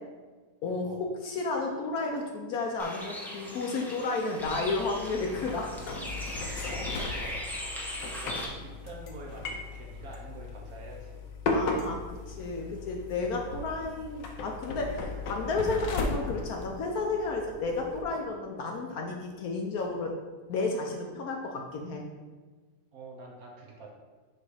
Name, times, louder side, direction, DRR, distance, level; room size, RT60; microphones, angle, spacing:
voice 1, 0.6-5.8 11.5-20.1 20.5-22.0, left 3 dB, 65° left, 1 dB, 1.0 m, -32 dB
Bird, 2.8-8.5, equal, 5° left, 0.3 m, -39 dB
sound 1, 4.4-18.0, left 3 dB, 85° left, 1.4 m, -37 dB
voice 2, 6.6-7.4 8.0-11.3 13.5-13.7 22.9-23.9, right 2 dB, 60° right, -1 dB, 1.3 m, -46 dB
6.8 x 3.3 x 4.8 m, 1.3 s
omnidirectional pair, 1.9 m